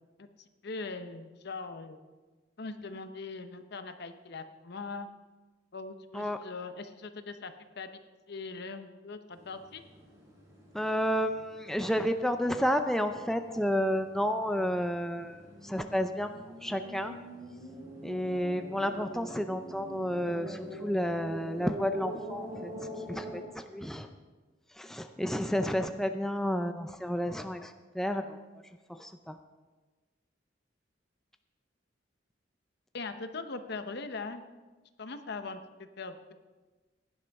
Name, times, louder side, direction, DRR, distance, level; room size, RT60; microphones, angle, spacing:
voice 1, 0.2-2.0 2.6-5.1 5.7-8.0 8.3-9.8 32.9-34.5 35.0-36.3, left 3 dB, 60° left, 9 dB, 0.8 m, -41 dB
sound 1, 9.3-23.4, equal, 20° right, 3.7 m, -45 dB
voice 2, 10.7-16.3 16.6-17.2 18.0-24.1 24.8-28.4 28.9-29.4, equal, ahead, 7 dB, 0.4 m, -31 dB
16.0 x 10.5 x 3.5 m, 1.3 s
head